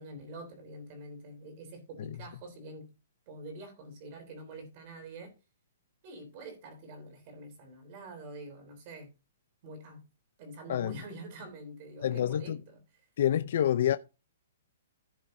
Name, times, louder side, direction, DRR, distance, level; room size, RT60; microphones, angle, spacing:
voice 1, 0.0-2.9 3.3-5.3 6.0-9.1 9.6-10.1 10.4-12.8, right 2 dB, 30° right, 3.4 m, -46 dB
voice 2, 12.0-12.6 13.2-14.0, left 10 dB, 45° left, 0.5 m, -27 dB
15.5 x 7.2 x 2.6 m
hypercardioid pair, 180°, 0 cm